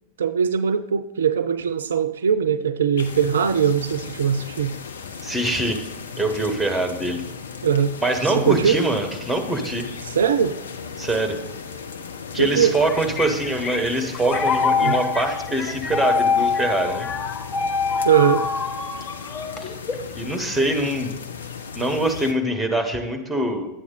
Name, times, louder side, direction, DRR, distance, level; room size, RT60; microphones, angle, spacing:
voice 1, 0.2-4.7 7.6-7.9 8.3-8.8 10.0-10.6 12.4-12.8 14.8-15.0 18.0-18.5, right 7 dB, 65° right, 12 dB, 0.4 m, -21 dB
sound 1, 3.0-22.3, left 6 dB, 70° left, 0.8 m, -36 dB
voice 2, 5.2-5.9 6.2-7.2 8.0-9.8 11.0-11.4 12.3-17.1 20.1-21.2 21.7-23.7, right 1 dB, 5° right, 6 dB, 1.5 m, -24 dB
sound 2, 12.6-20.1, left 5 dB, 25° left, 1.1 m, -25 dB
11.0 x 8.4 x 4.0 m, 0.98 s
figure-of-eight pair, 90°, 0 cm